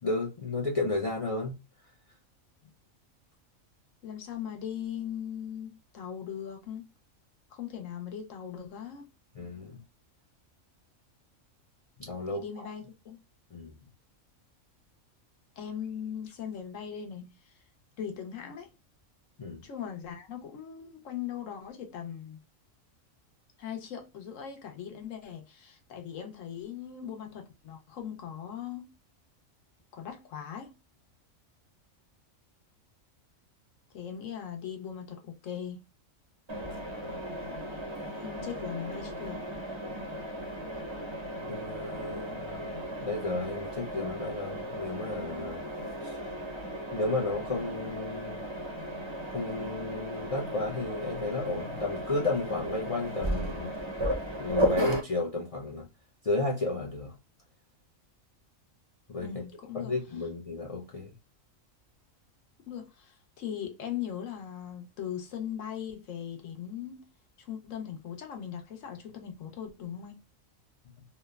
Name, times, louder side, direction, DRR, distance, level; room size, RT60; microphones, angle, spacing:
voice 1, 0.0-1.6 9.4-9.8 12.0-12.4 13.5-13.8 19.4-19.7 41.5-42.7 43.0-46.2 46.9-48.4 49.3-53.7 54.4-55.9 56.2-57.2 59.1-59.3 59.7-61.1, left 2 dB, 55° left, 0.3 m, -33 dB
voice 2, 4.0-6.9 7.5-9.1 12.3-13.2 15.6-17.5 18.0-18.7 19.6-22.4 23.6-28.9 29.9-30.7 33.9-35.8 38.1-39.4 59.2-60.0 62.7-67.1 67.4-70.2, left 9 dB, 75° left, 1.1 m, -39 dB
Mechanisms, 36.5-55.0, equal, 30° right, 0.5 m, -35 dB
3.0 x 2.1 x 2.2 m
omnidirectional pair, 1.4 m